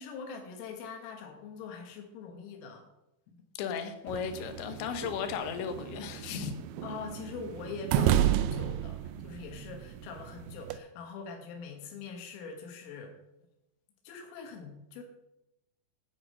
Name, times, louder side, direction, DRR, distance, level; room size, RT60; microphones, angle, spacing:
voice 1, 0.0-2.9 3.3-3.4 6.8-13.2 14.1-15.0, left 5 dB, 90° left, 3.9 m, -43 dB
voice 2, 3.6-6.5, left 7 dB, 75° left, 3.2 m, -35 dB
sound 1, 4.1-10.8, right 10 dB, 85° right, 2.7 m, -32 dB
9.6 x 9.1 x 5.4 m
omnidirectional pair, 5.8 m